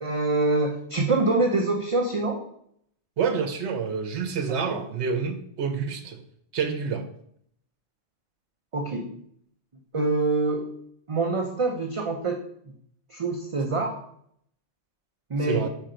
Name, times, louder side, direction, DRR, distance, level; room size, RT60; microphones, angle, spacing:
voice 1, 0.0-2.4 4.6-4.8 8.7-9.2 9.9-10.8 11.1-12.4 13.1-14.0 15.3-15.7, right 3 dB, 35° right, 2 dB, 0.6 m, -25 dB
voice 2, 3.2-6.2 6.5-7.0 15.4-15.7, right 6 dB, 80° right, 6 dB, 1.0 m, -28 dB
5.3 x 4.4 x 5.0 m, 0.68 s
omnidirectional pair, 1.1 m